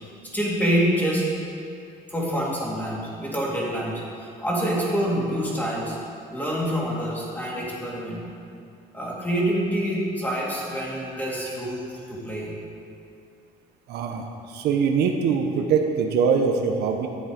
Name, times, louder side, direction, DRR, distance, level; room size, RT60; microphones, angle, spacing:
voice 1, 0.3-1.3 2.1-6.0 6.3-8.2 8.9-11.8 12.1-12.5, equal, 10° left, -5 dB, 2.6 m, -26 dB
voice 2, 13.9-17.1, right 6 dB, 75° right, 3 dB, 0.9 m, -23 dB
10.5 x 7.3 x 5.0 m, 2.5 s
cardioid pair, 110°, 17 cm